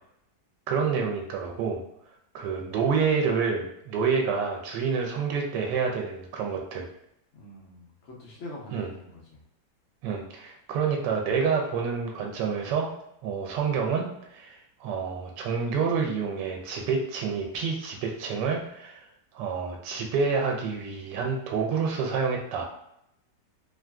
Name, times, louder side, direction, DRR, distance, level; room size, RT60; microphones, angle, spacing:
voice 1, 0.7-1.8 2.3-6.9 8.7-8.9 10.0-13.0 13.2-19.0 19.3-22.6, right 5 dB, 85° right, 1 dB, 1.2 m, -28 dB
voice 2, 7.3-9.4, left 1 dB, 60° left, -2 dB, 0.8 m, -44 dB
3.1 x 2.5 x 2.3 m, 0.77 s
omnidirectional pair, 1.9 m